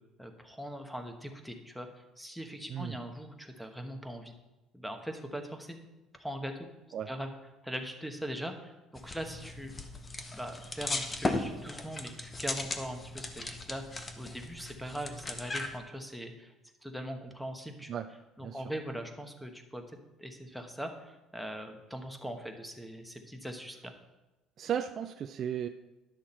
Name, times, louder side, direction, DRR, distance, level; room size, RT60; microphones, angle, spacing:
voice 1, 0.2-4.3 4.7-5.8 6.2-6.7 7.1-7.3 7.6-9.7 10.3-16.5 16.8-17.9 18.4-19.8 20.2-23.9, equal, ahead, 5 dB, 1.1 m, -41 dB
sound 1, 9.0-15.8, left 2 dB, 20° left, 0.9 m, -37 dB
voice 2, 24.6-25.7, right 9 dB, 45° right, 6 dB, 0.4 m, -35 dB
10.5 x 6.3 x 4.3 m, 1.1 s
cardioid pair, 110°, 0 cm